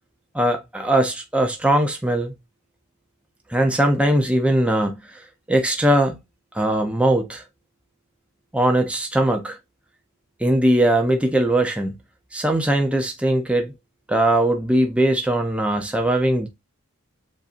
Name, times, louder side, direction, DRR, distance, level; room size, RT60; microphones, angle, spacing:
voice 1, 0.3-2.4 3.5-5.0 5.5-6.2 6.5-7.4 8.5-9.6 10.4-11.9 12.3-13.7 14.1-16.5, right 1 dB, 5° right, 0.6 m, -20 dB
7.5 x 2.6 x 2.5 m
head